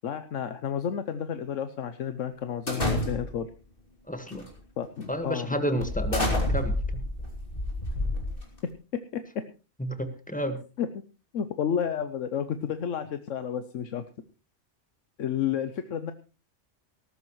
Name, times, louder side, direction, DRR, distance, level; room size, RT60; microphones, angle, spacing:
voice 1, 0.0-3.5 4.8-5.5 9.1-9.2 10.8-11.0 11.3-14.0 15.2-16.1, left 8 dB, 80° left, 10 dB, 1.2 m, -31 dB
sound 1, 2.7-3.5 4.3-4.6 5.0-5.1 5.8-8.7, left 2 dB, 45° left, 3.2 m, -29 dB
voice 2, 4.1-4.5 5.1-7.0 9.8-10.6, equal, 5° left, 7 dB, 1.6 m, -31 dB
18.5 x 13.5 x 3.1 m, 0.33 s
omnidirectional pair, 1.3 m